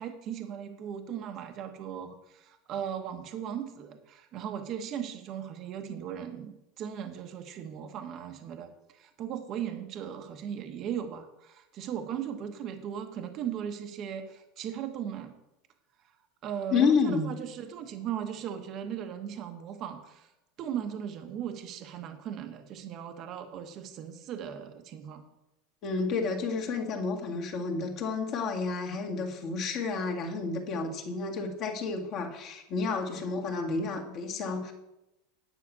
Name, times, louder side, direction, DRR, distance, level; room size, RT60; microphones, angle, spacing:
voice 1, 0.0-15.3 16.4-20.3 20.6-25.3, right 9 dB, 35° right, 6 dB, 1.0 m, -38 dB
voice 2, 16.7-17.3 25.8-34.7, left 4 dB, 35° left, 2 dB, 1.9 m, -30 dB
10.0 x 5.8 x 8.4 m, 0.91 s
supercardioid pair, 165°, 0 cm